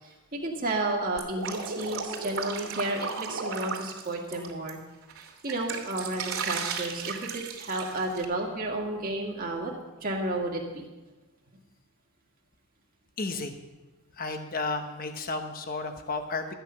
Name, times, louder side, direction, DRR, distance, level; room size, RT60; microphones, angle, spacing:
voice 1, 0.0-4.8 5.1-9.7 10.0-10.9, right 2 dB, 40° right, -1 dB, 2.0 m, -32 dB
Drip, 1.2-4.7 5.1-8.2, right 5 dB, 70° right, 2.7 m, -35 dB
voice 2, 13.2-13.5 14.2-16.5, left 3 dB, 40° left, 6 dB, 1.0 m, -32 dB
13.5 x 9.3 x 5.8 m, 1.2 s
head